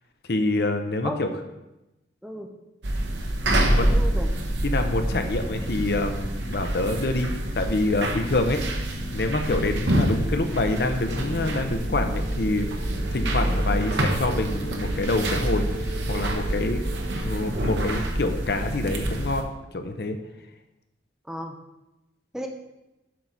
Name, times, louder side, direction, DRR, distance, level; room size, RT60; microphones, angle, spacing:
voice 1, 0.3-1.3 3.6-4.0 4.6-12.7 13.1-15.6 16.1-16.8 17.2-19.5 19.7-20.2, left 2 dB, 55° left, 6 dB, 0.7 m, -26 dB
sound 1, 2.8-19.4, right 1 dB, 85° right, 0.9 m, -27 dB
sound 2, 3.1-17.5, right 2 dB, 60° right, 1.9 m, -41 dB
voice 2, 3.6-4.3 10.0-10.1 13.5-13.6 21.3-21.6 22.3-22.5, equal, 5° right, 3 dB, 0.6 m, -34 dB
7.5 x 4.1 x 6.0 m, 0.97 s
head